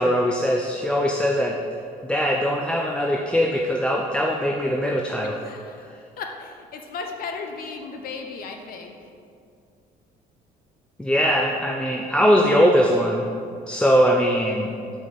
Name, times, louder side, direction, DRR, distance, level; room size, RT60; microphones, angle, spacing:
voice 1, 0.0-1.6 2.0-5.4 11.0-13.3 13.7-14.7, equal, 5° left, 0 dB, 0.5 m, -21 dB
voice 2, 5.4-8.9, left 4 dB, 60° left, 4 dB, 0.7 m, -35 dB
5.3 x 5.0 x 5.7 m, 2.3 s
cardioid pair, 110°, 17 cm